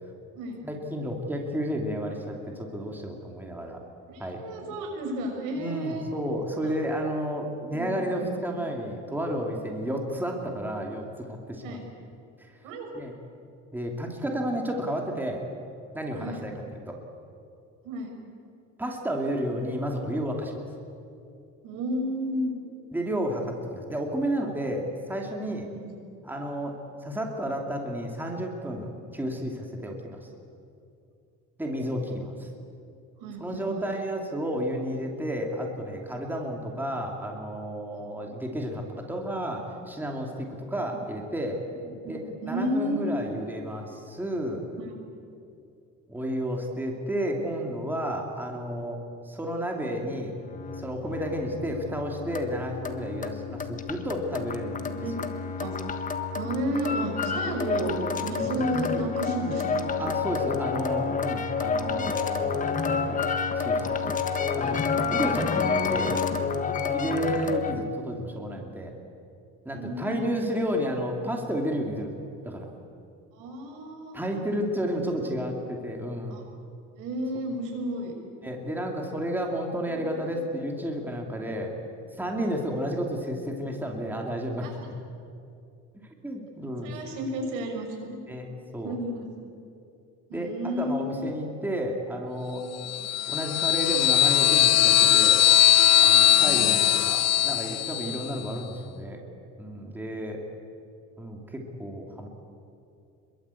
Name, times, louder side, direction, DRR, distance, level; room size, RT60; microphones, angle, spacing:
voice 1, 0.6-3.8 4.2-4.4 5.6-11.8 12.4-12.5 12.9-13.1 13.7-15.4 15.9-16.5 16.8-17.0 18.8-20.5 22.9-25.7 26.2-26.8 27.0-30.2 31.6-32.5 33.4-41.6 42.1-42.2 42.5-44.6 46.1-49.0 49.2-50.3 50.8-54.9 58.4-58.5 60.0-64.8 65.1-66.2 66.9-68.9 69.6-72.1 72.4-72.7 74.1-76.4 78.4-81.7 82.2-84.7 86.2-87.2 88.3-88.5 88.7-88.9 90.3-92.7 93.3-95.5 96.0-99.2 99.6-100.4 101.2-102.3, equal, 5° right, 1 dB, 2.9 m, -32 dB
voice 2, 4.1-6.0 6.6-6.8 7.7-8.4 9.8-10.0 11.6-11.8 12.6-13.0 16.2-16.5 17.8-18.2 21.6-22.5 25.7-25.9 33.2-33.8 40.9-41.0 41.9-42.0 42.4-43.2 44.8-45.0 54.7-55.2 55.6-55.7 56.3-59.9 61.7-62.1 67.3-67.6 69.7-70.5 73.3-74.2 75.3-75.5 76.3-76.4 77.0-78.1 82.4-82.5 84.6-84.7 86.8-88.2 88.8-89.3 90.3-91.3 92.8-92.9 96.3-96.8, equal, 90° right, 2 dB, 6.5 m, -33 dB
sound 1, 50.5-67.8, left 5 dB, 25° left, 1.5 m, -29 dB
sound 2, 92.8-98.3, left 12 dB, 55° left, 0.9 m, -20 dB
27.0 x 22.5 x 8.5 m, 2.5 s
cardioid pair, 150°, 31 cm